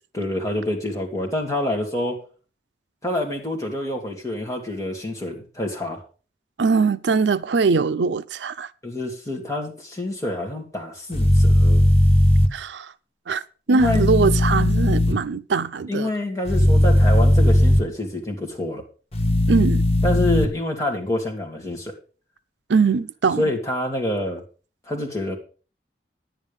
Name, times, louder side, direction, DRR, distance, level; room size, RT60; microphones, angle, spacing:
voice 1, 0.1-2.2 3.0-6.0 8.8-11.8 13.7-14.0 15.9-18.8 20.0-22.0 23.4-24.4 24.9-25.4, left 1 dB, 20° left, 2.4 m, -27 dB
voice 2, 6.6-8.7 12.5-12.9 13.3-13.4 13.7-16.1 19.5-19.9 22.7-23.5, right 4 dB, 80° right, 0.5 m, -21 dB
sound 1, 11.1-12.5 13.8-15.1 16.5-17.8 19.1-20.4, left 1 dB, 35° left, 1.3 m, -17 dB
10.5 x 9.2 x 5.2 m
head